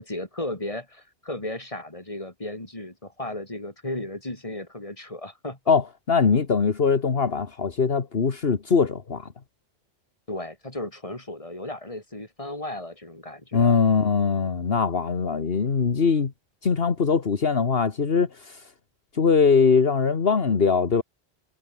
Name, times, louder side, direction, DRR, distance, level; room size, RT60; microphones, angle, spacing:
voice 1, 0.0-5.6 10.3-13.8, left 1 dB, 30° left, 4.2 m, -35 dB
voice 2, 5.7-9.3 13.5-16.3 16.6-18.6 19.1-21.0, left 5 dB, 65° left, 1.7 m, -21 dB
omnidirectional pair, 1.1 m